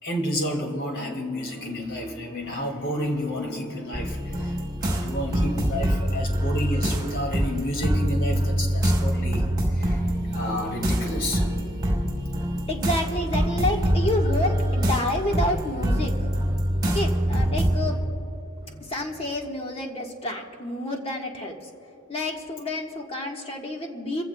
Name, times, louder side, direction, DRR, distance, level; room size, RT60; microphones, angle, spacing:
voice 1, 0.0-4.6 4.8-9.5 9.7-10.0 10.3-11.4 18.6-18.9, equal, 60° left, 2 dB, 2.3 m, -30 dB
sound 1, 3.9-18.0, equal, 20° right, 4.0 m, -25 dB
voice 2, 12.7-16.3 16.8-18.0 18.9-21.5 22.1-24.2, left 1 dB, 25° left, 1 dB, 1.4 m, -29 dB
27.0 x 15.5 x 2.3 m, 2.8 s
head